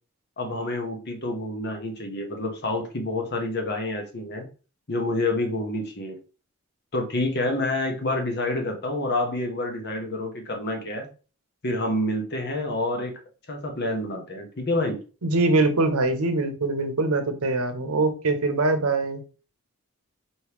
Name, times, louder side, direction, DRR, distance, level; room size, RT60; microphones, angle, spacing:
voice 1, 0.4-4.5 4.9-6.2 6.9-11.1 11.6-13.1 13.5-15.0, left 2 dB, 50° left, 3 dB, 1.1 m, -28 dB
voice 2, 15.2-19.2, right 2 dB, 85° right, 8 dB, 0.9 m, -23 dB
4.4 x 3.1 x 3.4 m, 0.35 s
head